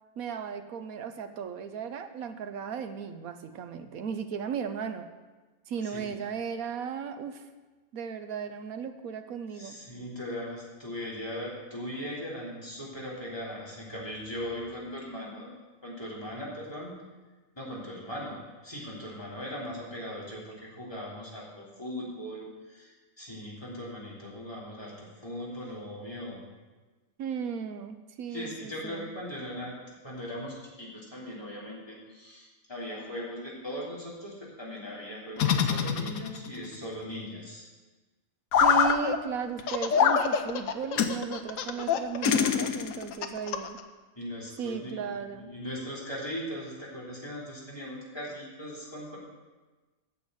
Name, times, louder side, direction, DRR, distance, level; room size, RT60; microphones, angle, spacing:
voice 1, 0.2-5.1 5.7-7.4 7.9-9.8 27.2-29.1 38.6-43.8 44.6-45.5, right 7 dB, 80° right, 8 dB, 1.3 m, -35 dB
voice 2, 9.5-15.5 15.8-16.9 17.6-26.4 28.3-37.6 44.2-49.2, equal, 15° left, -7 dB, 3.4 m, -39 dB
sound 1, 35.4-36.6 38.5-39.0 40.0-40.2 41.0-41.2 42.2-43.1, left 7 dB, 90° left, 1.2 m, -24 dB
Laughter, 38.6-39.2 39.6-43.8, left 6 dB, 70° left, 1.1 m, -30 dB
9.3 x 7.0 x 7.8 m, 1.3 s
omnidirectional pair, 1.5 m